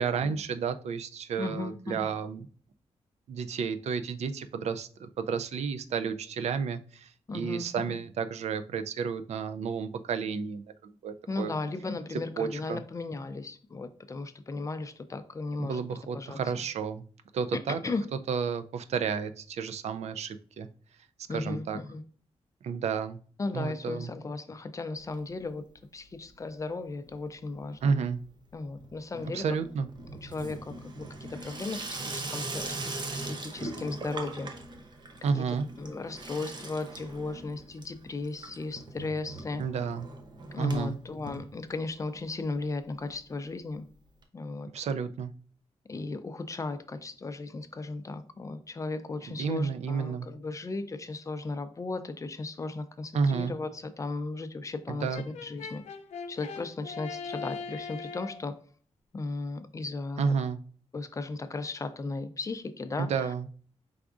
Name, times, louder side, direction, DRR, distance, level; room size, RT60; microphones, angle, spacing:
voice 1, 0.0-2.5 3.3-11.5 12.4-12.8 15.6-17.0 17.3-17.8 18.3-20.7 21.3-21.8 22.6-23.2 23.5-24.1 27.8-28.2 29.3-29.9 35.2-35.7 39.6-40.1 40.6-41.0 44.7-45.3 49.4-50.3 53.1-53.5 54.9-55.2 60.2-60.6 63.0-63.5, right 6 dB, 75° right, 10 dB, 0.4 m, -31 dB
voice 2, 1.4-2.1 7.3-8.0 11.3-15.8 16.1-16.4 17.5-18.0 21.3-22.0 23.4-25.6 25.9-27.8 28.5-29.5 30.2-34.5 35.3-35.4 35.8-39.6 40.5-43.9 44.3-44.7 45.9-55.8 56.3-58.6 59.1-60.4 60.9-63.3, left 3 dB, 30° left, 10 dB, 0.4 m, -36 dB
Water tap faucet / Sink (filling or washing), 25.0-25.8 26.0-26.6 26.9-42.2 42.5-42.6 42.8-42.9 43.1-43.2 44.2-44.3, right 2 dB, 40° right, 0.7 m, -41 dB
Brass instrument, 55.1-58.4, left 5 dB, 85° left, 0.5 m, -40 dB
4.8 x 3.5 x 2.4 m, 0.44 s
wide cardioid pair, 115°, 11 cm